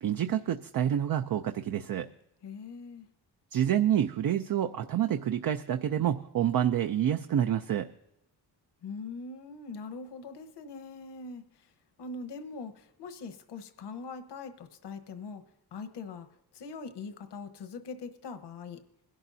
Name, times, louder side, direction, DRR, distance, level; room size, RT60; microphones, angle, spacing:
voice 1, 0.0-2.1 3.5-7.9, right 10 dB, 55° right, 8 dB, 0.6 m, -28 dB
voice 2, 2.4-3.1 8.8-11.7 12.0-15.4 15.7-16.3 16.5-18.8, left 4 dB, 75° left, 10 dB, 1.2 m, -42 dB
21.5 x 11.5 x 2.7 m, 0.83 s
cardioid pair, 120°, 41 cm